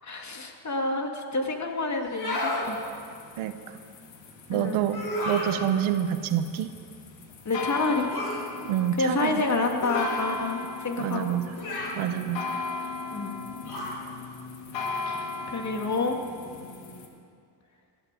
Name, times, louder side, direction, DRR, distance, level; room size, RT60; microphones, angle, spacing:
voice 1, 0.0-2.9 4.5-4.8 7.4-8.1 9.0-11.3 13.1-13.4 15.1-16.2, left 3 dB, 35° left, 3 dB, 2.4 m, -28 dB
sound 1, 2.0-2.7 4.9-5.6 8.1-8.4 9.8-10.2 11.6-12.0 13.6-14.0, left 1 dB, 50° left, 4.6 m, -31 dB
sound 2, 2.6-17.1, left 4 dB, 70° left, 2.4 m, -38 dB
voice 2, 4.5-6.7 8.6-9.4 11.0-11.5 12.0-12.4, right 10 dB, 80° right, 10 dB, 1.0 m, -27 dB
18.5 x 8.8 x 7.6 m, 2.3 s
supercardioid pair, 65°, 47 cm